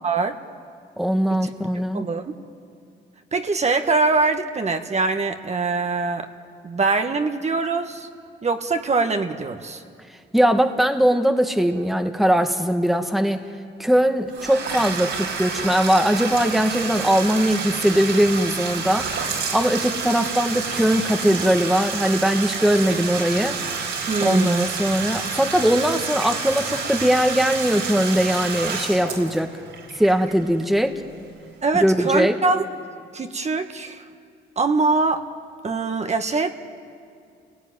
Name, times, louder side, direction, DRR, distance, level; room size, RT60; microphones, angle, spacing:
voice 1, 0.0-0.4 1.4-2.4 3.3-6.3 6.6-8.1 8.4-9.8 24.1-24.7 31.6-32.6 33.1-34.0 34.6-35.3 35.6-36.5, right 3 dB, 35° right, 6 dB, 1.5 m, -23 dB
voice 2, 1.0-2.0 10.3-13.5 13.8-19.1 19.5-23.6 24.2-29.5 30.0-31.0 31.7-32.4, equal, ahead, 5 dB, 1.5 m, -20 dB
Bathtub (filling or washing), 14.3-31.0, right 5 dB, 75° right, 4.8 m, -29 dB
29.5 x 18.0 x 9.7 m, 2.3 s
cardioid pair, 90°, 20 cm